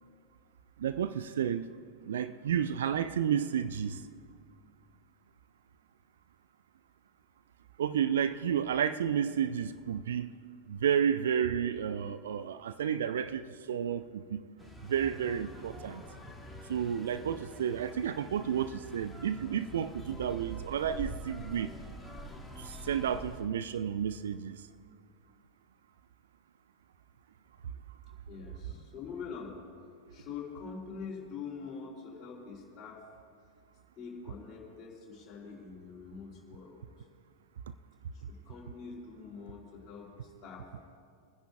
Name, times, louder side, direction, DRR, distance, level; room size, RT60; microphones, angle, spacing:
voice 1, 0.8-1.7 2.1-4.0 7.8-10.3 10.7-14.4 14.8-16.0 16.7-21.7 22.6-24.6, right 8 dB, 60° right, 0.4 m, -31 dB
sound 1, 14.6-23.4, equal, ahead, 1.4 m, -46 dB
voice 2, 28.3-29.6 30.1-33.1 34.0-37.1 38.1-40.7, left 5 dB, 30° left, 3.3 m, -44 dB
29.0 x 10.0 x 2.5 m
figure-of-eight pair, 90°, 0 cm